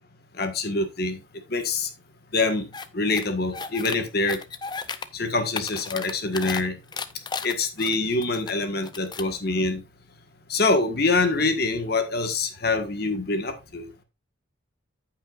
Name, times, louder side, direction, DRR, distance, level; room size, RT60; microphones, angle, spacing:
voice 1, 0.4-1.2 1.5-1.9 2.3-2.7 2.9-4.4 5.1-6.8 7.4-9.8 10.5-13.9, left 3 dB, 50° left, 7 dB, 1.5 m, -25 dB
sound 1, 2.7-2.9 3.1-4.0 4.3-5.1 5.4-6.6 6.9-8.5 8.8-9.3, left 5 dB, 20° left, 0.5 m, -34 dB
14.5 x 5.6 x 2.5 m, 0.25 s
head